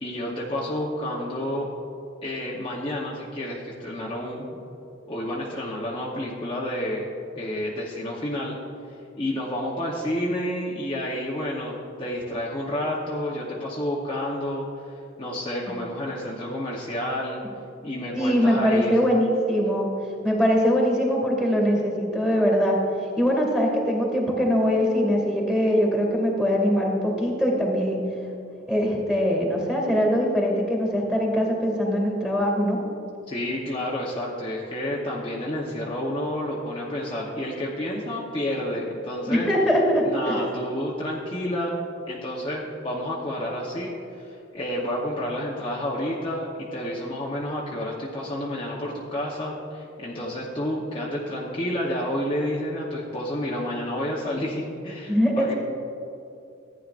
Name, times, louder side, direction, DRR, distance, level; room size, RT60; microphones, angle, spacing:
voice 1, 0.0-1.7 2.2-4.6 5.1-7.1 7.3-8.6 8.9-14.7 14.9-17.4 17.8-18.9 33.3-39.5 40.0-41.8 42.1-55.5, left 1 dB, 25° left, -5 dB, 1.0 m, -30 dB
voice 2, 18.1-19.9 20.2-22.8 23.2-28.1 28.7-32.8 39.3-40.4 55.1-55.5, equal, 5° right, -1 dB, 2.3 m, -22 dB
15.0 x 9.8 x 2.5 m, 2.7 s
head